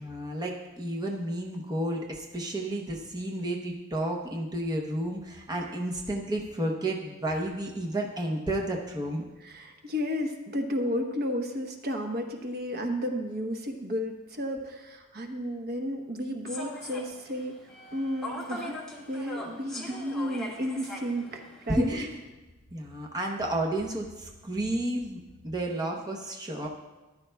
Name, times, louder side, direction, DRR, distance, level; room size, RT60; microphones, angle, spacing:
voice 1, 0.0-9.2 21.7-22.1 22.7-26.7, right 1 dB, 20° right, 0 dB, 0.8 m, -31 dB
voice 2, 9.4-17.5 17.9-18.8 19.1-21.9, equal, 45° right, 3 dB, 1.0 m, -32 dB
Human voice / Subway metro underground, 16.5-22.2, left 2 dB, ahead, 1.6 m, -41 dB
14.0 x 11.5 x 2.3 m, 1.1 s
head